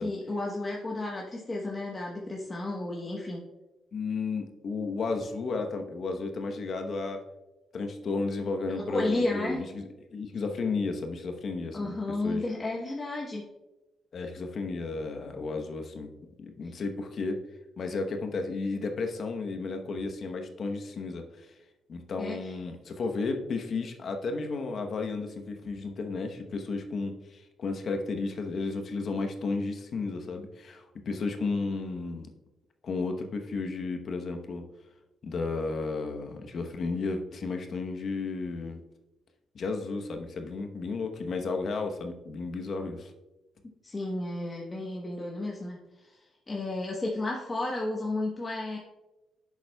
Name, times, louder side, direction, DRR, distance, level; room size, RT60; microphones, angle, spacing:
voice 1, 0.0-3.4 8.8-9.6 11.7-13.5 16.6-16.8 22.2-22.5 43.8-46.2 46.5-48.8, left 2 dB, 25° left, -2 dB, 1.1 m, -32 dB
voice 2, 3.9-7.2 7.7-9.8 10.1-12.0 12.2-12.4 14.1-16.1 16.4-17.4 17.8-21.6 21.9-32.3 32.8-34.6 35.2-38.8 39.5-43.1, left 3 dB, 60° left, 5 dB, 0.9 m, -33 dB
10.5 x 7.1 x 2.3 m, 1.1 s
cardioid pair, 80°, 0 cm